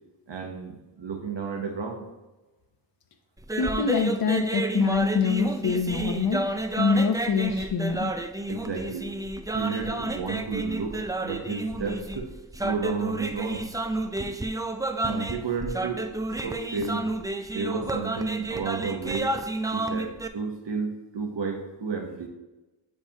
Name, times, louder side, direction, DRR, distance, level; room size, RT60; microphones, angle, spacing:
voice 1, 0.3-2.1 8.5-9.1 9.5-12.3 12.6-13.7 15.0-16.0 16.4-17.1 17.5-19.3 19.7-22.3, right 5 dB, 90° right, 2 dB, 0.9 m, -32 dB
sound 1, 3.4-20.3, right 2 dB, 10° right, 0.3 m, -31 dB
voice 2, 3.6-8.1, left 5 dB, 60° left, 5 dB, 0.6 m, -25 dB
8.2 x 4.7 x 2.7 m, 1.1 s
wide cardioid pair, 75°, 42 cm